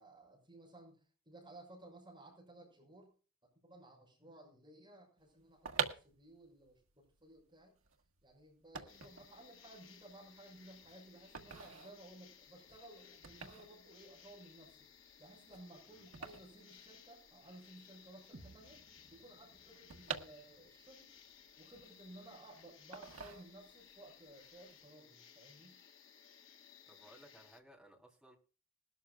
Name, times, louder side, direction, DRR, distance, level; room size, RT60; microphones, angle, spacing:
voice 1, 0.0-3.1 3.6-7.7 8.2-14.9 15.2-18.8 19.1-21.1 21.6-25.8, right 1 dB, 20° right, -1 dB, 6.3 m, -57 dB
sound 1, 5.4-17.5 17.8-17.9 18.1-20.9 21.3-22.4 22.9-23.9 24.3-24.6, right 6 dB, 85° right, 1.6 m, -46 dB
sound 2, 8.9-27.6, left 7 dB, 70° left, 1.6 m, -61 dB
sound 3, 18.3-22.3, right 2 dB, 50° right, 1.1 m, -63 dB
voice 2, 26.9-28.4, right 1 dB, ahead, -1 dB, 3.2 m, -60 dB
20.5 x 12.5 x 2.3 m, 0.37 s
head